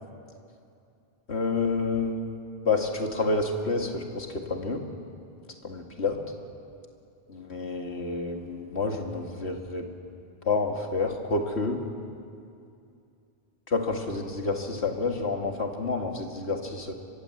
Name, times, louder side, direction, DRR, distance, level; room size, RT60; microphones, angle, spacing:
voice 1, 1.3-2.2 2.6-4.8 5.6-6.2 7.3-9.9 10.4-11.8 13.7-16.9, left 3 dB, 80° left, 3 dB, 2.4 m, -29 dB
25.5 x 22.5 x 8.0 m, 2.5 s
omnidirectional pair, 1.1 m